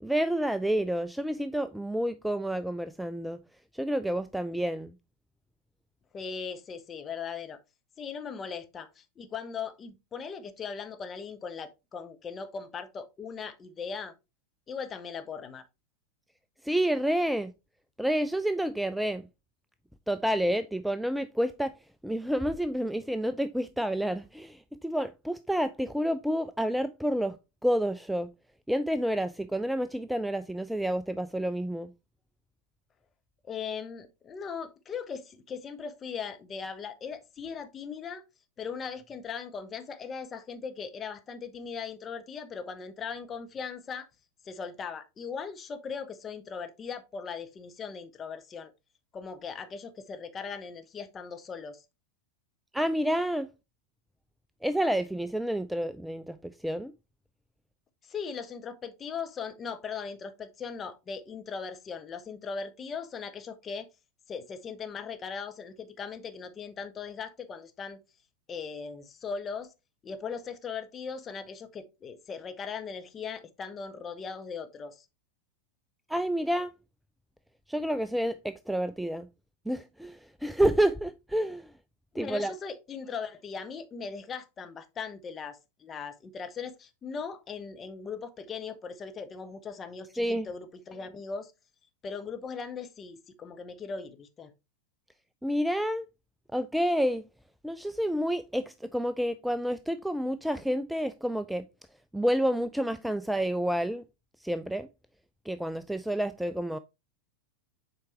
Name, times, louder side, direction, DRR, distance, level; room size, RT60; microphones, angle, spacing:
voice 1, 0.0-3.4 3.7-4.9 16.6-17.5 18.0-19.3 20.1-21.7 22.0-27.4 27.6-28.3 28.7-31.9 52.7-53.5 54.6-56.9 76.1-76.7 77.7-79.3 79.7-81.7 82.2-82.5 90.2-90.5 95.4-96.1 96.5-97.2 97.6-101.7 102.1-104.0 104.4-104.9 105.5-106.8, equal, ahead, 0.3 m, -29 dB
voice 2, 6.1-7.6 8.0-14.1 14.7-15.6 33.4-38.2 38.6-44.1 44.4-48.7 49.1-51.8 58.0-63.9 64.3-68.0 68.5-69.7 70.0-75.1 82.1-91.5 92.0-94.5, left 6 dB, 20° left, 0.9 m, -39 dB
7.4 x 4.7 x 3.1 m
figure-of-eight pair, 90°, 0 cm